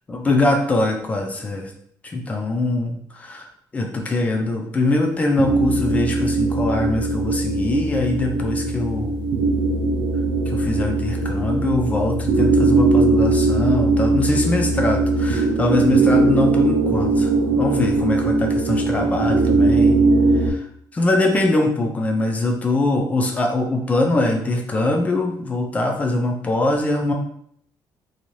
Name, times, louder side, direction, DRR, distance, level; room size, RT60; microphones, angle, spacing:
voice 1, 0.1-1.7 2.0-3.5 3.7-9.1 10.5-19.9 20.4-20.6 20.9-27.1, left 2 dB, 20° left, 2 dB, 0.4 m, -22 dB
sound 1, 5.4-20.5, right 3 dB, 75° right, 0.4 m, -19 dB
2.6 x 2.3 x 3.0 m, 0.67 s
cardioid pair, 165°, 8 cm